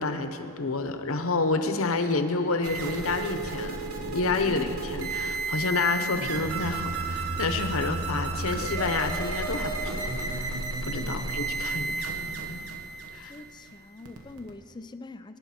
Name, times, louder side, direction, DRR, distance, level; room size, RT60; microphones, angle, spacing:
voice 1, 0.0-10.6 10.8-12.6 13.1-13.3, left 3 dB, 70° left, 8 dB, 0.9 m, -29 dB
sound 1, 2.6-14.5, right 3 dB, 80° right, 1.0 m, -32 dB
voice 2, 4.4-4.8 11.0-11.3 11.7-11.8 13.1-15.4, left 2 dB, 20° left, 11 dB, 0.4 m, -44 dB
18.0 x 9.9 x 4.3 m, 2.5 s
head